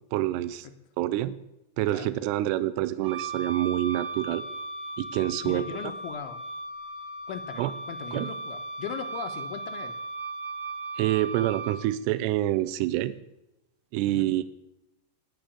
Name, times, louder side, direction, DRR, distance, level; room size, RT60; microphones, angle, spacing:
voice 1, 0.1-0.7 1.0-1.4 1.8-4.4 5.0-5.7 7.6-7.7 8.1-8.3 11.0-13.1 13.9-14.4, right 14 dB, 85° right, 14 dB, 2.4 m, -27 dB
Wind instrument woodwind instrument, 3.0-11.8, right 3 dB, 60° right, 3.8 m, -37 dB
voice 2, 5.4-6.4 7.3-10.0 14.1-14.3, left 8 dB, 75° left, 7 dB, 3.2 m, -38 dB
20.5 x 6.9 x 8.4 m, 0.90 s
omnidirectional pair, 5.8 m